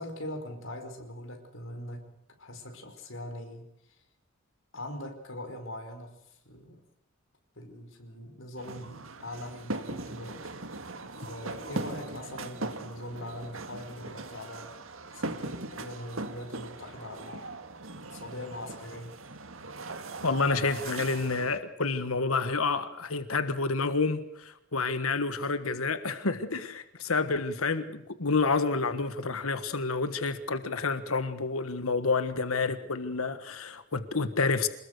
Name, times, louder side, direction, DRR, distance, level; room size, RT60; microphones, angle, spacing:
voice 1, 0.0-4.0 4.7-6.8 7.6-10.5 11.1-14.8 15.1-17.5 18.1-19.2, left 1 dB, 65° left, 4.9 m, -42 dB
sound 1, 8.6-21.6, right 2 dB, 75° right, 1.9 m, -40 dB
voice 2, 20.2-34.7, left 4 dB, 90° left, 1.5 m, -29 dB
26.5 x 20.5 x 6.7 m
head